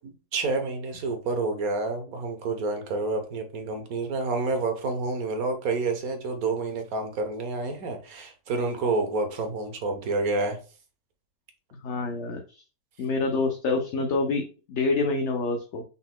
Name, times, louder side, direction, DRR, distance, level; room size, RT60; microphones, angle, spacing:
voice 1, 0.0-10.6, right 3 dB, 75° right, 5 dB, 1.4 m, -29 dB
voice 2, 11.8-12.6 13.0-15.8, left 3 dB, 60° left, 3 dB, 0.9 m, -27 dB
5.7 x 3.9 x 2.3 m, 0.35 s
omnidirectional pair, 1.6 m